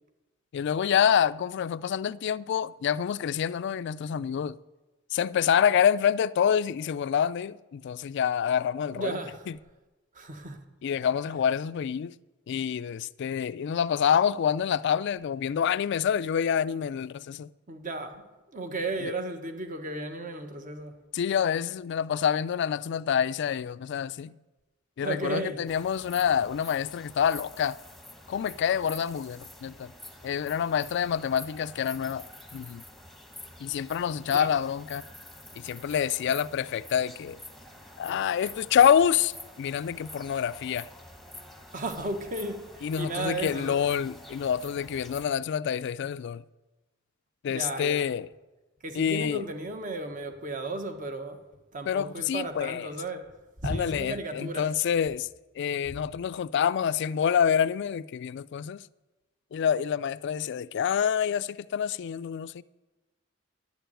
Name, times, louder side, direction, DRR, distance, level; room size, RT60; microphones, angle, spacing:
voice 1, 0.5-4.6 5.1-9.2 10.8-12.1 12.5-17.5 19.0-19.1 21.1-24.3 25.0-27.8 28.3-29.9 30.2-32.3 32.5-32.8 33.6-35.0 35.5-37.4 38.0-40.9 42.8-46.4 47.4-48.3 48.9-49.4 51.9-52.9 53.6-55.3 55.6-58.8 59.5-62.6, left 8 dB, 60° left, 0.3 m, -27 dB
voice 2, 8.9-9.5 10.1-10.6 17.7-21.0 25.0-25.7 34.3-34.5 41.7-43.8 47.5-48.1 48.8-51.4 51.7-53.3 53.6-54.7 55.9-56.0, right 2 dB, 40° right, 1.2 m, -34 dB
sound 1, 25.7-45.3, left 1 dB, ahead, 1.1 m, -48 dB
11.0 x 6.9 x 9.0 m
head